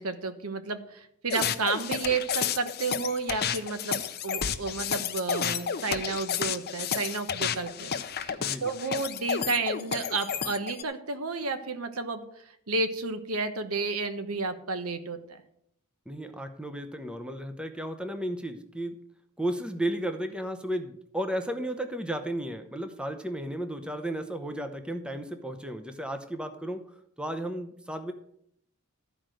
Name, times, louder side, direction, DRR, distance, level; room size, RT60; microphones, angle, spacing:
voice 1, 0.0-12.2 12.7-15.4, right 4 dB, 70° right, 9 dB, 1.1 m, -32 dB
sound 1, 1.3-10.8, left 8 dB, 45° left, 0.7 m, -31 dB
voice 2, 8.4-8.7 16.1-18.9 19.4-26.8 27.2-28.1, right 1 dB, 5° right, 7 dB, 0.8 m, -34 dB
13.0 x 5.1 x 7.6 m, 0.72 s
head